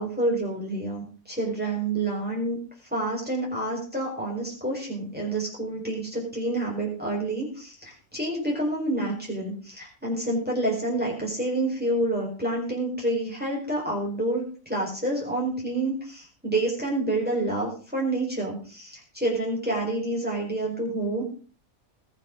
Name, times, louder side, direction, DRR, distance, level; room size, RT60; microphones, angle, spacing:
voice 1, 0.0-2.6 2.9-21.2, right 2 dB, 5° right, -3 dB, 4.4 m, -28 dB
21.5 x 7.5 x 3.8 m, 0.41 s
omnidirectional pair, 1.5 m